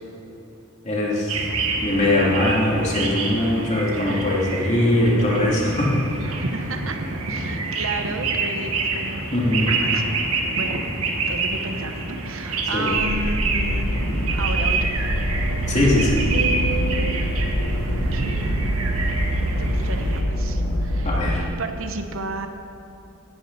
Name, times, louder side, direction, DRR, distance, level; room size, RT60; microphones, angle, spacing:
voice 1, 0.8-1.4 1.8-5.9 9.3-9.7 12.7-12.9 15.7-16.3 21.0-21.4, left 1 dB, 35° left, -4 dB, 2.8 m, -21 dB
sound 1, 1.3-20.2, right 3 dB, 85° right, 1.7 m, -27 dB
voice 2, 6.4-7.0 7.3-9.3 9.6-10.8 11.3-13.9 14.4-15.1 16.3-17.1 18.1-18.5 19.6-21.2 21.6-22.5, right 3 dB, 70° right, 6 dB, 1.0 m, -32 dB
sound 2, 12.9-21.4, equal, 75° left, 1.8 m, -24 dB
16.0 x 12.5 x 4.1 m, 3.0 s
head